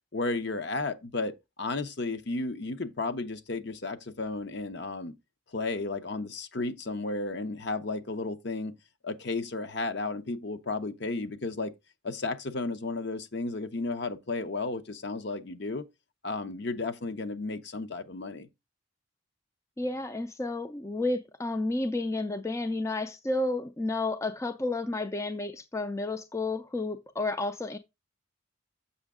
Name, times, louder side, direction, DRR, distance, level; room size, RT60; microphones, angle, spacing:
voice 1, 0.1-5.1 5.5-8.8 9.0-11.7 12.0-15.9 16.2-18.5, left 3 dB, 55° left, 0.8 m, -33 dB
voice 2, 19.8-27.8, left 2 dB, 15° left, 0.4 m, -31 dB
7.1 x 6.1 x 3.6 m
head